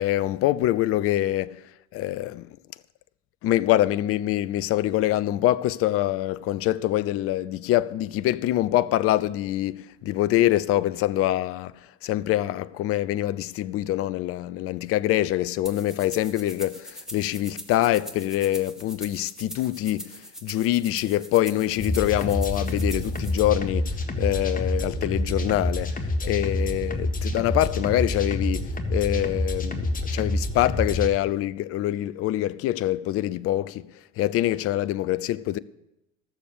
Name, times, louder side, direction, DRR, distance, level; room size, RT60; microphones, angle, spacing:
voice 1, 0.0-1.6 1.9-2.5 3.4-11.7 12.0-33.9 34.2-35.6, left 14 dB, 40° left, 0.5 m, -25 dB
sound 1, 15.7-23.4, equal, ahead, 1.3 m, -42 dB
sound 2, 21.8-31.1, left 1 dB, 25° left, 1.4 m, -27 dB
14.5 x 6.8 x 6.7 m
figure-of-eight pair, 65°, 35 cm